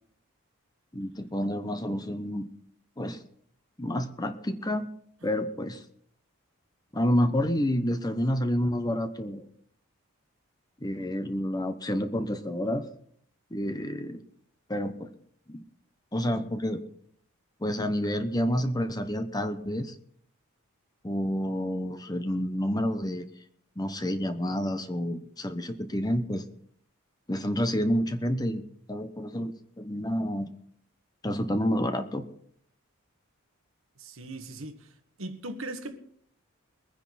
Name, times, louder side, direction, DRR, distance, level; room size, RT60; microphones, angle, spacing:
voice 1, 0.9-2.5 3.0-3.2 3.8-4.9 5.2-5.8 6.9-9.5 10.8-12.9 13.5-14.2 14.7-14.9 15.5-15.6 16.1-16.8 17.6-20.0 21.0-23.3 23.8-26.5 27.3-28.6 28.9-30.5 31.2-32.2, equal, 20° left, 0.9 m, -29 dB
voice 2, 34.0-34.9 35.2-36.0, right 2 dB, 70° right, 1.6 m, -39 dB
22.5 x 9.8 x 4.2 m
head